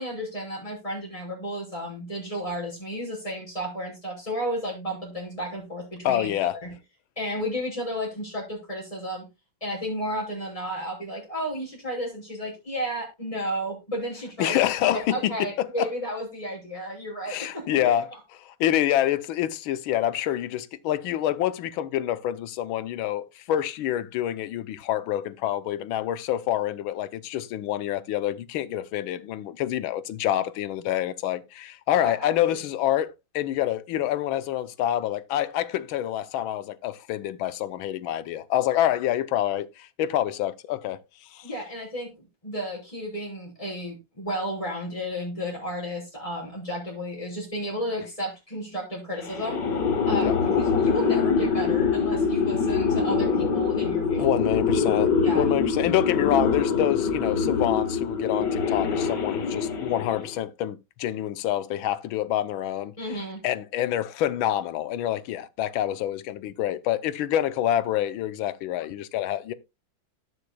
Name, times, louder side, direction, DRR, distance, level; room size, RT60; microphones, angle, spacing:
voice 1, 0.0-6.7 7.2-9.3 9.6-14.7 14.9-18.0 31.9-32.6 41.4-49.6 50.1-54.3 55.2-55.5 63.0-63.4, equal, 15° left, 6.1 m, -33 dB
voice 2, 6.0-6.6 14.4-15.9 17.3-18.1 18.4-41.0 41.3-41.5 50.2-50.4 54.2-62.9 63.4-69.5, left 12 dB, 85° left, 1.5 m, -27 dB
sound 1, 49.2-60.4, left 5 dB, 60° left, 2.0 m, -24 dB
18.5 x 6.4 x 2.2 m
omnidirectional pair, 2.2 m